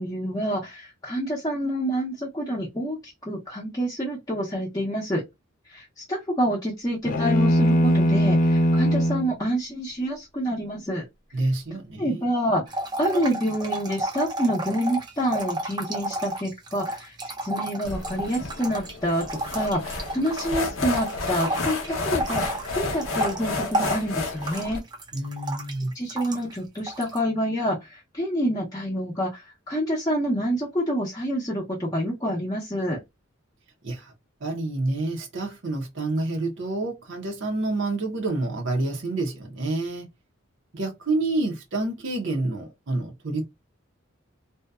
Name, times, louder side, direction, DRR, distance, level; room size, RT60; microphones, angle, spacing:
voice 1, 0.0-5.2 5.7-11.1 12.0-19.3 19.5-24.8 25.9-33.0, equal, 20° left, 0.7 m, -27 dB
sound 1, 7.0-9.3, equal, 40° left, 0.3 m, -20 dB
voice 2, 11.3-12.3 25.1-25.9 33.8-34.1 34.4-40.1 40.7-43.5, right 2 dB, 60° right, 0.7 m, -28 dB
sound 2, 12.7-20.6 20.9-26.6 26.9-27.2, right 1 dB, 20° right, 0.5 m, -32 dB
sound 3, 17.8-24.8, left 3 dB, 85° left, 0.8 m, -31 dB
2.7 x 2.1 x 2.2 m
head